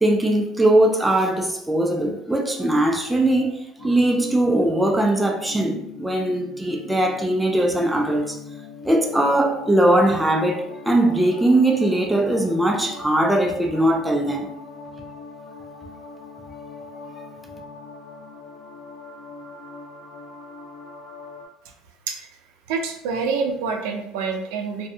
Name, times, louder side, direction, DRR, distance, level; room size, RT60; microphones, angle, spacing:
voice 1, 0.0-8.4 8.8-14.5, right 1 dB, 5° right, 0.4 m, -20 dB
sound 1, 3.8-21.5, left 4 dB, 90° left, 0.9 m, -41 dB
voice 2, 22.7-24.9, right 5 dB, 80° right, 0.4 m, -26 dB
2.6 x 2.2 x 2.6 m
cardioid pair, 120°, 0 cm